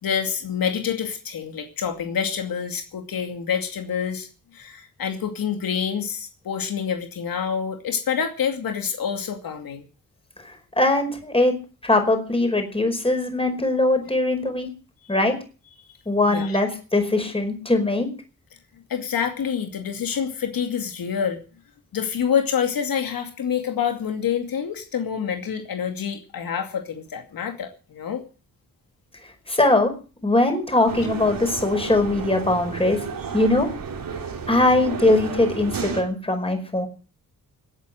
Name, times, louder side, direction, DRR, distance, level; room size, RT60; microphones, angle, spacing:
voice 1, 0.0-4.3 4.5-9.8 16.3-16.6 18.9-21.4 21.9-28.2, left 7 dB, 85° left, 5 dB, 2.5 m, -27 dB
voice 2, 10.4-11.5 11.8-14.7 15.1-15.3 16.0-18.1 29.5-29.9 30.2-33.0 33.3-33.7 34.5-36.9, left 2 dB, 15° left, 6 dB, 5.1 m, -21 dB
sound 1, 30.9-36.0, right 5 dB, 75° right, 3.6 m, -32 dB
18.0 x 8.7 x 7.8 m, 0.38 s
cardioid pair, 95°, 34 cm